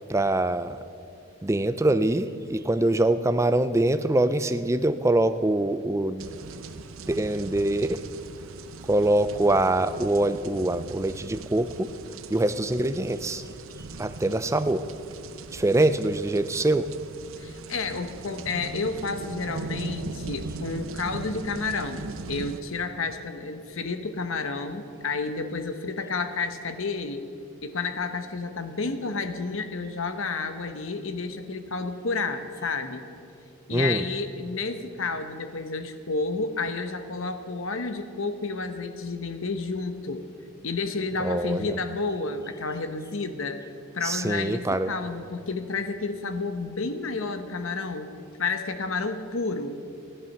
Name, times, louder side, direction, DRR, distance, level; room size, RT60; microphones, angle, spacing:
voice 1, 0.1-0.8 1.4-6.3 7.1-8.0 8.9-11.9 12.3-13.4 14.0-14.9 15.5-16.9 33.7-34.0 41.2-41.8 44.0-44.9, right 1 dB, 15° right, 11 dB, 0.4 m, -24 dB
sound 1, 6.2-22.6, right 3 dB, 70° right, 0.7 m, -39 dB
voice 2, 17.4-27.2 27.6-33.0 33.7-40.3 40.6-43.6 43.9-48.1 48.4-49.8, left 4 dB, 70° left, 9 dB, 1.0 m, -31 dB
15.5 x 11.0 x 6.6 m, 2.4 s
head